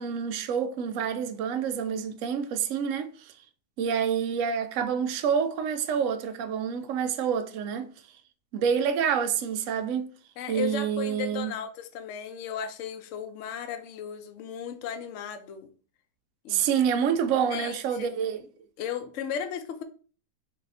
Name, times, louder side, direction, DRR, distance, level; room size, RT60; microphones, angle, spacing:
voice 1, 0.0-3.3 3.8-7.9 8.5-10.1 10.5-11.6 16.5-18.4, right 7 dB, 70° right, 0.8 m, -27 dB
voice 2, 10.4-15.7 16.4-16.6 17.5-18.1 18.8-19.8, left 8 dB, 65° left, 0.8 m, -35 dB
4.0 x 2.7 x 4.0 m
omnidirectional pair, 1.8 m